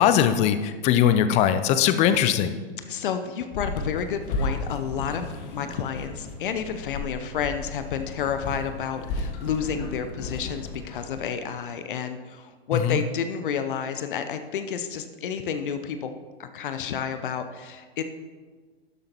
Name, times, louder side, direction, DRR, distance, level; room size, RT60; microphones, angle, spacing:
voice 1, 0.0-2.5 12.8-13.0, left 9 dB, 20° left, 12 dB, 0.5 m, -20 dB
voice 2, 2.9-16.1 16.4-18.0, left 7 dB, 55° left, 9 dB, 0.8 m, -30 dB
sound 1, 3.5-11.3, left 3 dB, 40° left, 1.4 m, -34 dB
12.0 x 10.5 x 3.0 m, 1.5 s
figure-of-eight pair, 110°, 31 cm